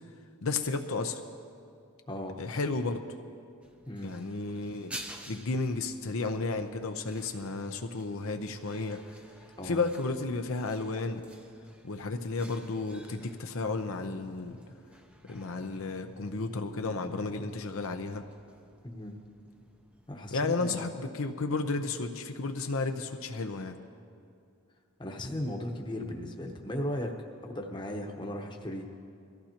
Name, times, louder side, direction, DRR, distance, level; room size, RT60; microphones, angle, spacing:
voice 1, 0.4-1.2 2.4-3.0 4.0-4.9 5.3-9.0 9.6-11.2 11.8-14.6 15.3-18.2 20.3-23.8, left 3 dB, 70° left, 6 dB, 0.7 m, -33 dB
voice 2, 2.1-2.4 3.9-4.2 9.6-9.8 18.8-19.2 20.1-20.8 25.0-28.9, left 1 dB, 20° left, 2 dB, 1.0 m, -36 dB
sound 1, 3.6-20.3, right 1 dB, 5° right, 0.6 m, -52 dB
22.0 x 14.5 x 2.9 m, 2.4 s
head